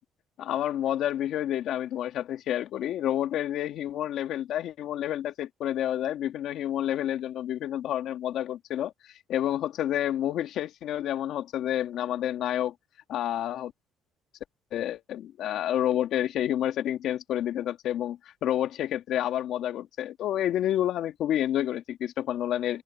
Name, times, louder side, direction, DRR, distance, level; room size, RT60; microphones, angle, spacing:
voice 1, 0.4-8.9 9.3-12.7 13.1-13.7 14.7-22.8, left 11 dB, 70° left, 2.1 m, -29 dB
cardioid pair, 100°, 0 cm